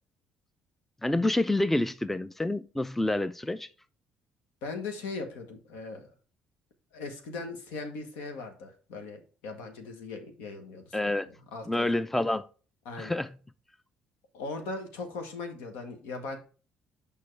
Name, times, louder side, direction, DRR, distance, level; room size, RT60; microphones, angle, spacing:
voice 1, 1.0-3.7 10.9-11.3 11.7-12.5 13.0-13.3, left 1 dB, 5° left, 0.4 m, -28 dB
voice 2, 4.6-6.1 6.9-12.0 12.8-13.2 14.3-16.4, left 3 dB, 90° left, 1.3 m, -39 dB
6.7 x 5.3 x 3.2 m
supercardioid pair, 80°, 3 cm